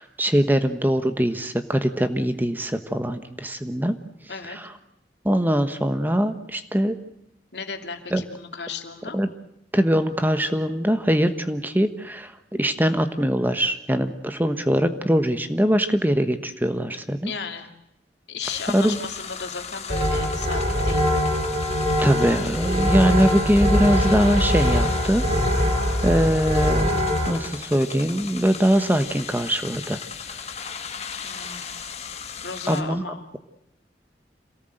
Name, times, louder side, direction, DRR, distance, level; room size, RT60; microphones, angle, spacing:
voice 1, 0.0-4.0 4.5-4.7 5.2-7.0 8.1-8.2 9.1-9.3 9.7-17.3 18.7-19.0 22.0-25.2 26.0-30.0 32.7-33.0, equal, 10° right, 9 dB, 1.2 m, -22 dB
voice 2, 7.5-9.2 17.2-17.7 18.3-21.2 31.2-31.8 32.2-33.3, left 5 dB, 75° left, 5 dB, 2.7 m, -35 dB
sound 1, 18.4-32.8, left 6 dB, 35° left, 1.8 m, -37 dB
sound 2, 19.9-27.3, equal, 40° right, 5.5 m, -22 dB
27.0 x 18.0 x 7.9 m, 0.81 s
head